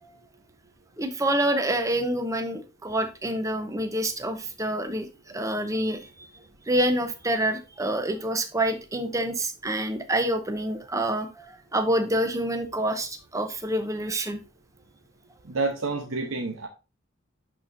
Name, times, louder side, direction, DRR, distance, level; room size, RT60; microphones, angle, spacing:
voice 1, 1.0-6.3 6.7-14.4, right 1 dB, 15° right, 0.8 m, -27 dB
voice 2, 15.5-16.7, right 3 dB, 80° right, 0.9 m, -28 dB
11.0 x 4.3 x 2.6 m
head